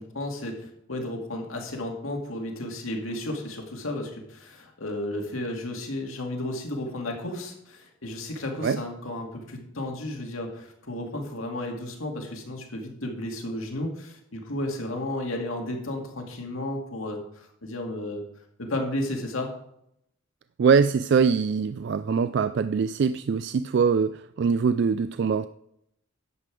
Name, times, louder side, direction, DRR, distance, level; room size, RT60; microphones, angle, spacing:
voice 1, 0.0-18.2 18.6-19.5, left 1 dB, 90° left, 2 dB, 2.1 m, -33 dB
voice 2, 20.6-25.5, right 6 dB, 55° right, 12 dB, 0.3 m, -23 dB
11.0 x 7.6 x 4.8 m, 0.75 s
head